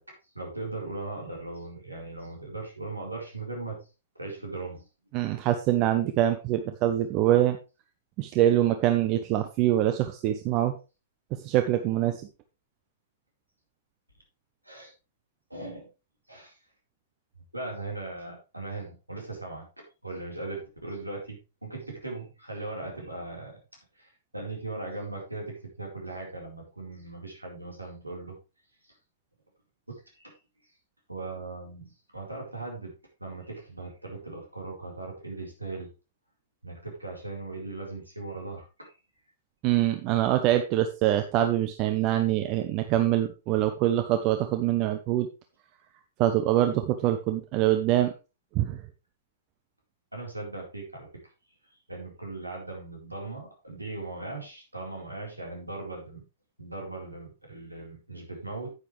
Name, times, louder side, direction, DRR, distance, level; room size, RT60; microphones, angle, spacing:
voice 1, 0.3-3.8 4.1-4.8 14.6-14.9 15.5-15.9 16.3-16.5 17.5-23.5 24.0-28.4 29.9-30.3 31.1-32.9 33.2-35.9 36.6-38.9 50.1-51.1 51.9-56.2 56.6-58.7, right 2 dB, 90° right, 0 dB, 4.2 m, -38 dB
voice 2, 5.1-7.6 8.2-10.7 11.4-12.2 39.6-45.3 46.2-48.1 48.5-48.8, right 13 dB, 35° right, 8 dB, 0.8 m, -24 dB
9.6 x 9.0 x 3.3 m, 0.30 s
figure-of-eight pair, 105°, 0 cm